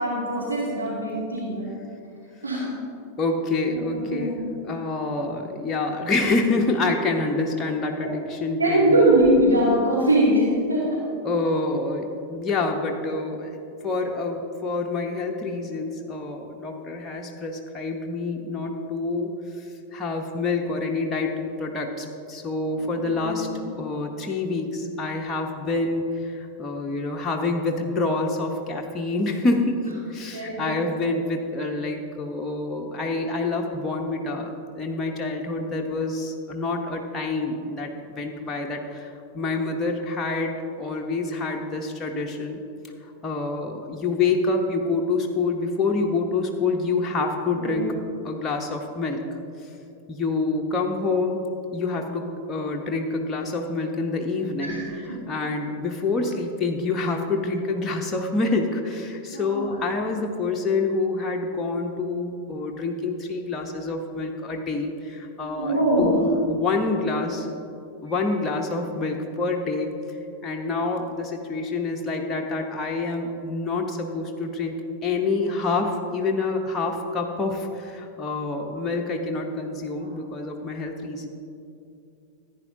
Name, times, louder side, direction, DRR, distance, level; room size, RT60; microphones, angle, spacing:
voice 1, 0.0-1.7 2.4-2.7 3.7-4.4 8.0-8.1 8.6-10.9 23.0-23.7 30.3-30.7 47.6-47.9 54.6-54.8 59.3-59.7 65.6-66.2, right 1 dB, 75° right, -8 dB, 2.6 m, -22 dB
voice 2, 3.2-4.4 4.6-9.0 11.2-13.6 13.8-19.3 19.6-23.5 23.8-42.6 43.2-47.8 48.2-49.3 49.6-49.7 50.1-51.4 51.7-67.5 68.0-70.2 70.4-74.7 75.0-81.3, left 3 dB, 20° left, 1 dB, 0.9 m, -27 dB
15.0 x 9.6 x 2.7 m, 2.6 s
figure-of-eight pair, 90°, 0 cm